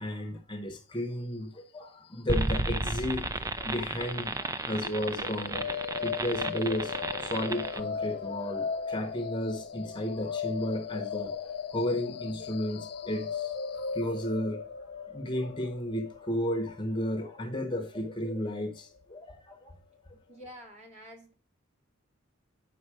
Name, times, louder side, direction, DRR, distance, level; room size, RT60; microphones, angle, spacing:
voice 1, 0.0-5.6 6.0-13.5 13.9-14.6 15.1-19.8, left 1 dB, 25° left, 1.0 m, -33 dB
sound 1, 2.3-7.8, right 2 dB, 15° right, 0.4 m, -33 dB
sound 2, 4.8-18.7, left 6 dB, 55° left, 0.7 m, -37 dB
voice 2, 20.3-21.3, equal, 35° right, 2.3 m, -48 dB
8.8 x 5.3 x 4.9 m
head